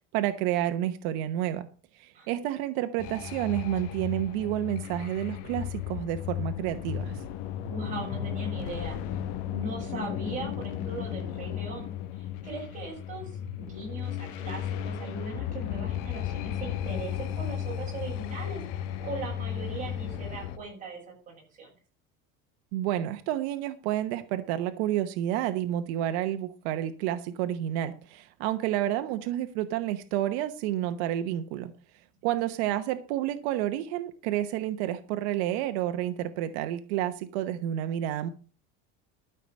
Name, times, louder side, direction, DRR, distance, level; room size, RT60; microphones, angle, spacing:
voice 1, 0.1-1.7 1.9-7.2 22.7-31.7 32.2-38.3, right 12 dB, 85° right, 9 dB, 1.1 m, -30 dB
sound 1, 3.0-20.6, left 10 dB, 75° left, 1.1 m, -35 dB
voice 2, 7.7-9.0 9.5-13.3 13.6-21.7, right 2 dB, 25° right, -3 dB, 6.8 m, -39 dB
13.0 x 5.8 x 6.6 m, 0.39 s
cardioid pair, 180°, 32 cm